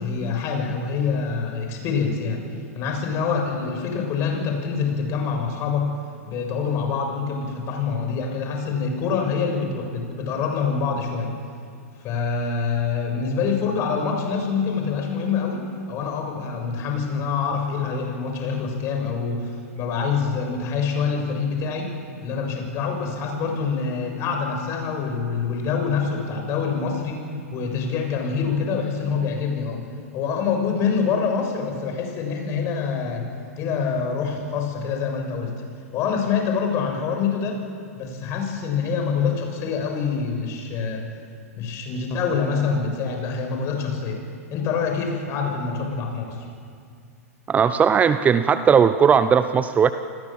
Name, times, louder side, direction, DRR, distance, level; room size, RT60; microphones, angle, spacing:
voice 1, 0.0-2.4 2.7-6.0 6.3-11.3 12.0-15.6 15.9-21.9 22.2-27.2 27.5-29.8 30.1-33.2 33.6-35.5 35.9-37.6 37.9-41.0 41.6-44.2 44.5-46.4, left 5 dB, 35° left, 3 dB, 6.8 m, -25 dB
voice 2, 47.5-49.9, right 7 dB, 20° right, 12 dB, 0.8 m, -17 dB
28.5 x 19.5 x 7.5 m, 2.3 s
figure-of-eight pair, 100°, 8 cm